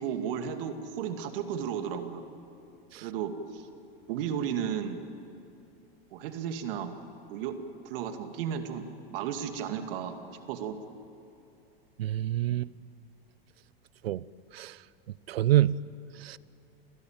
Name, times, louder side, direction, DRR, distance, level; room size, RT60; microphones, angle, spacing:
voice 1, 0.0-2.2 2.9-3.7 4.1-5.0 6.1-7.0 7.3-7.6 7.8-10.1 10.5-10.8, right 8 dB, 65° right, 7 dB, 2.3 m, -34 dB
voice 2, 12.0-12.7 14.0-14.2 14.5-14.7 15.3-15.8 16.2-16.4, right 13 dB, 85° right, 21 dB, 0.7 m, -26 dB
28.5 x 17.0 x 9.0 m, 2.8 s
hypercardioid pair, 100°, 29 cm